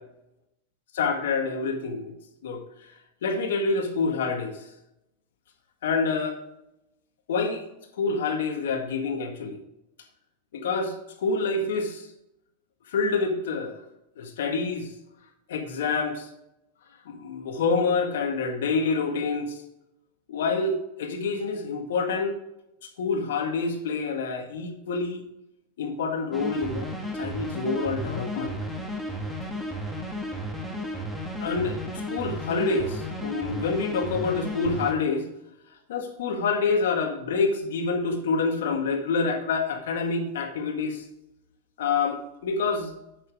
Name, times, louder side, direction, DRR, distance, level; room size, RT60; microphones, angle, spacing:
voice 1, 0.9-2.1 2.4-2.6 3.2-4.6 5.8-6.4 7.3-7.6 8.0-9.6 10.5-12.1 12.9-13.8 14.1-14.9 15.5-16.3 17.0-19.5 20.3-22.4 23.0-25.2 25.8-28.5 31.4-31.8 32.1-35.3 35.9-41.0 41.8-42.9, left 4 dB, 80° left, 3 dB, 1.9 m, -27 dB
sound 1, 26.3-34.9, equal, 5° right, 1.9 m, -33 dB
8.4 x 7.2 x 3.7 m, 0.86 s
hypercardioid pair, 120°, 0 cm